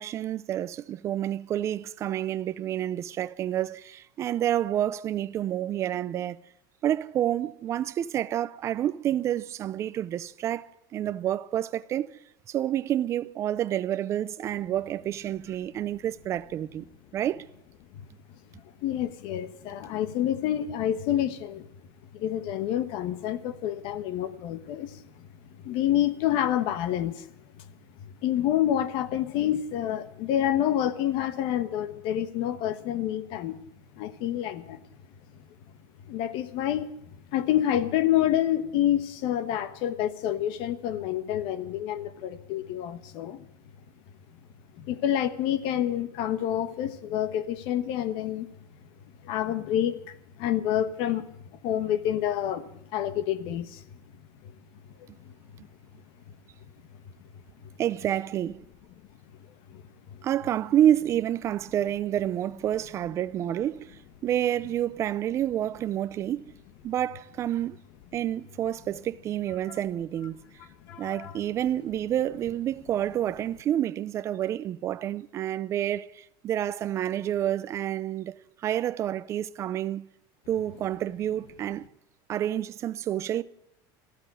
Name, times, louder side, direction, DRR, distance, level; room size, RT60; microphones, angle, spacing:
voice 1, 0.0-6.4 6.8-12.2 12.5-16.9 17.1-17.5 57.8-58.6 60.2-66.5 66.8-67.8 68.1-70.4 71.0-80.1 80.5-81.9 82.3-83.4, right 11 dB, 25° right, 0.5 m, -29 dB
voice 2, 18.8-21.7 22.1-25.3 25.6-27.2 27.6-27.7 28.0-33.6 34.0-34.8 36.1-36.9 37.3-43.5 44.8-48.5 49.2-51.3 51.6-53.8 55.2-55.3 59.7-59.8 60.1-60.2 70.9-71.4, left 11 dB, 50° left, 1.2 m, -28 dB
14.5 x 13.0 x 7.6 m
cardioid pair, 175°, 11 cm